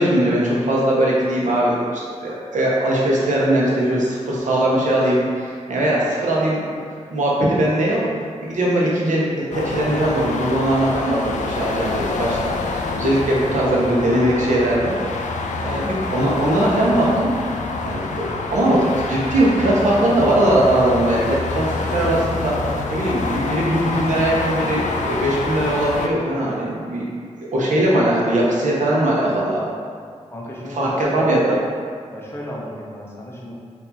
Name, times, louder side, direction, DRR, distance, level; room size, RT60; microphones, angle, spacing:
voice 1, 0.0-6.6 7.1-8.0 8.4-15.0 15.6-17.3 17.8-27.1 27.4-29.7 30.7-31.6, right 1 dB, 90° right, -5 dB, 1.0 m, -20 dB
sound 1, 9.5-26.1, left 3 dB, 80° left, 0.4 m, -26 dB
voice 2, 30.3-31.3 32.1-33.6, equal, 20° left, -4 dB, 0.9 m, -33 dB
4.5 x 2.7 x 4.2 m, 2.1 s
wide cardioid pair, 90°, 12 cm